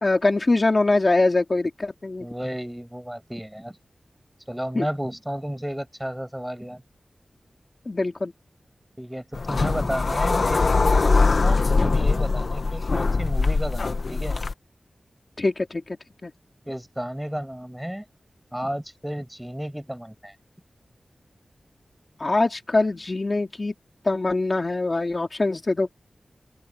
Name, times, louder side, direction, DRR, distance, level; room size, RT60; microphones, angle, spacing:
voice 1, 0.0-2.2 4.8-4.9 7.9-8.3 15.4-16.0 16.2-16.3 22.2-23.7 24.0-25.9, left 2 dB, 40° left, 2.4 m, -23 dB
voice 2, 2.2-3.8 4.5-6.8 9.0-14.4 16.7-18.1 18.5-20.4, equal, 5° right, 7.1 m, -32 dB
sound 1, 9.3-14.5, left 3 dB, 60° left, 1.1 m, -22 dB
open air
wide cardioid pair, 110°, 0 cm